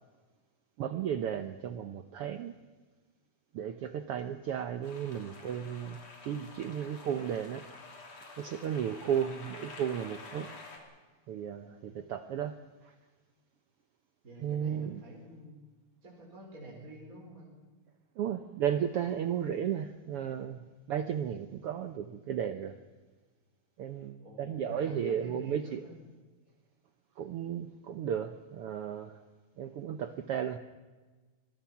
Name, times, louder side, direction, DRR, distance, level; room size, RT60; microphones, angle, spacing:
voice 1, 0.8-2.5 3.5-6.0 6.2-7.6 8.4-10.5 11.3-12.6 12.8-12.9 14.4-15.0 18.2-22.8 23.8-25.8 27.2-29.2 29.6-30.6, right 9 dB, 75° right, 1.3 m, -34 dB
sound 1, 4.8-10.8, left 3 dB, 55° left, 4.4 m, -49 dB
voice 2, 14.2-15.6 16.0-17.5 24.2-26.0, right 1 dB, 25° right, 4.7 m, -47 dB
26.0 x 21.0 x 5.8 m
omnidirectional pair, 3.6 m